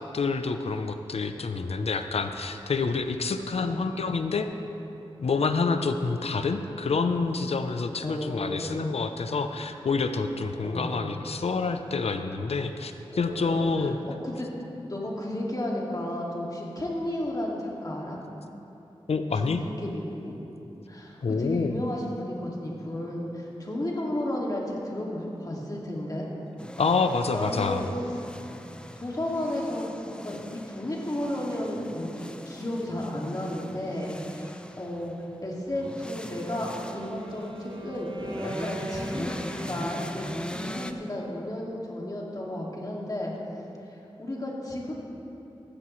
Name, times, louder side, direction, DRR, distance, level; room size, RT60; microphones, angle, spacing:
voice 1, 0.1-4.5 5.2-14.0 19.1-19.6 21.2-21.7 26.8-27.8, left 4 dB, 75° left, 8 dB, 0.6 m, -27 dB
voice 2, 8.0-9.0 10.6-11.0 13.1-14.5 14.8-18.2 19.4-20.4 20.9-26.3 27.3-27.9 29.0-35.1 35.4-43.3 44.2-44.9, left 1 dB, 35° left, -3 dB, 2.2 m, -33 dB
sound 1, 26.6-40.9, left 1 dB, 10° left, 0.6 m, -41 dB
Wind instrument woodwind instrument, 36.3-40.8, right 2 dB, 55° right, 1.1 m, -41 dB
15.0 x 11.5 x 3.2 m, 2.9 s
wide cardioid pair, 55°, 10 cm